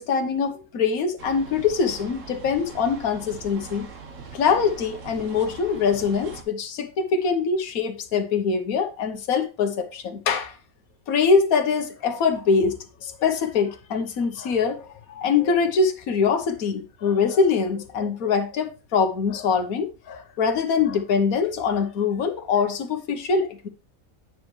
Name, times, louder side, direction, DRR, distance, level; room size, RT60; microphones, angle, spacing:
voice 1, 0.0-3.9 4.3-10.6 11.1-12.7 13.0-23.7, left 5 dB, 80° left, 1.5 m, -23 dB
sound 1, 1.2-6.4, right 4 dB, 65° right, 1.5 m, -41 dB
9.4 x 5.9 x 3.2 m
omnidirectional pair, 1.5 m